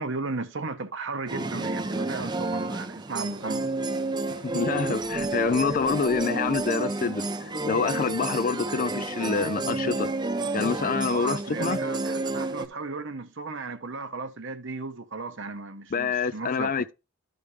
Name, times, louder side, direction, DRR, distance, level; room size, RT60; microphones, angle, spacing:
voice 1, 0.0-3.7 11.0-16.7, right 3 dB, 60° right, 1.1 m, -35 dB
sound 1, 1.3-12.7, right 2 dB, 20° right, 0.6 m, -30 dB
sound 2, 3.3-13.0, right 1 dB, 85° right, 2.2 m, -45 dB
voice 2, 4.4-10.1 10.5-11.8 15.9-16.9, left 5 dB, 40° left, 0.4 m, -27 dB
13.5 x 5.3 x 3.2 m
head